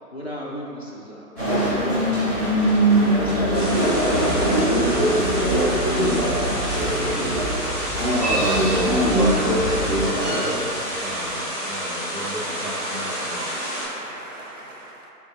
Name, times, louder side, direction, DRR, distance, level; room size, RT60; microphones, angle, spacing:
voice 1, 0.1-2.1 2.9-5.2, equal, 45° left, -4 dB, 0.5 m, -34 dB
sound 1, 1.4-11.3, right 1 dB, 15° right, 0.9 m, -24 dB
sound 2, 3.2-10.0, equal, 30° right, 1.3 m, -24 dB
sound 3, 3.5-13.9, equal, 5° left, 1.2 m, -30 dB
voice 2, 8.1-10.7 11.0-13.5, right 1 dB, 70° right, -3 dB, 1.0 m, -31 dB
voice 3, 12.2-15.1, right 2 dB, 50° right, -1 dB, 0.6 m, -39 dB
7.4 x 2.6 x 2.5 m, 2.8 s
figure-of-eight pair, 155°, 48 cm